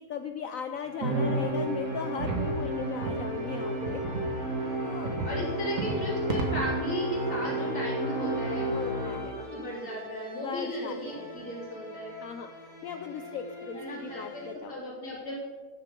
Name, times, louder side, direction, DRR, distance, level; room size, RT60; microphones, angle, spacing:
voice 1, 0.0-4.0 4.3-4.5 4.8-5.1 8.7-9.4 10.4-11.3 12.2-12.5 12.8-14.8, left 7 dB, 70° left, 7 dB, 0.8 m, -37 dB
sound 1, 0.7-14.5, left 1 dB, 15° left, 2.2 m, -45 dB
Musical instrument, 1.0-9.6, right 1 dB, 70° right, 2.6 m, -32 dB
sound 2, 2.2-2.5 3.0-3.2 3.9-4.3 5.0-5.4 5.8-6.0 6.3-6.7, right 3 dB, 50° right, 1.7 m, -32 dB
voice 2, 5.2-8.8 9.4-12.2 13.7-15.4, equal, 45° left, -5 dB, 4.1 m, -36 dB
13.0 x 9.7 x 3.7 m, 1.4 s
omnidirectional pair, 1.9 m